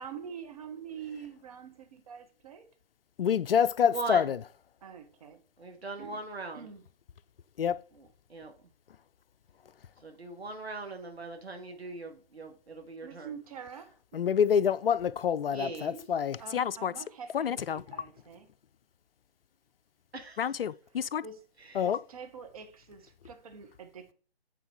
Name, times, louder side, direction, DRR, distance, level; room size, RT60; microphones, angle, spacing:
voice 1, 0.0-2.7 4.8-5.4 6.0-6.2 6.5-6.8 13.0-14.0 16.4-18.5 20.9-21.4 21.8-24.1, right 7 dB, 35° right, 1.2 m, -45 dB
voice 2, 3.2-4.4 7.6-7.8 14.1-16.9 17.3-17.8 20.4-21.2 21.8-22.0, left 8 dB, 60° left, 0.4 m, -27 dB
voice 3, 3.9-4.3 5.6-6.6 8.0-8.5 10.0-13.3 15.5-16.0 20.1-20.4 21.7-21.8, right 3 dB, 75° right, 1.5 m, -40 dB
9.2 x 3.9 x 3.6 m
figure-of-eight pair, 140°, 32 cm